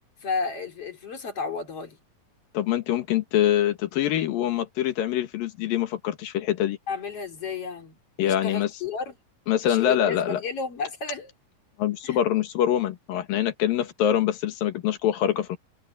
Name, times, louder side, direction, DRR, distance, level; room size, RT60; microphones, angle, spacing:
voice 1, 0.2-2.0 6.9-9.1 9.6-11.3 12.0-12.2, left 5 dB, 45° left, 4.0 m, -32 dB
voice 2, 2.5-6.8 8.2-8.7 9.5-10.4 11.8-15.6, left 11 dB, 80° left, 3.3 m, -24 dB
omnidirectional pair, 4.0 m